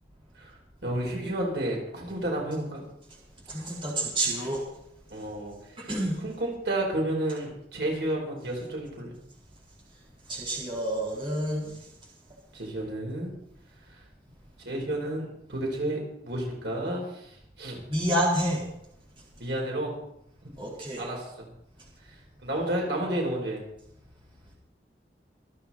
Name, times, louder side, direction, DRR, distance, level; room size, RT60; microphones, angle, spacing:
voice 1, 0.8-2.8 5.1-5.5 6.2-9.1 11.6-11.7 12.5-13.3 14.6-17.0 17.6-17.8 19.4-20.0 20.4-20.5 21.0-21.5 22.4-23.6, right 1 dB, 85° right, -1 dB, 4.8 m, -31 dB
voice 2, 3.5-4.6 5.8-6.2 10.3-11.7 17.9-18.6 20.6-21.1, right 1 dB, 30° right, -4 dB, 4.1 m, -28 dB
25.5 x 8.8 x 4.4 m, 0.78 s
head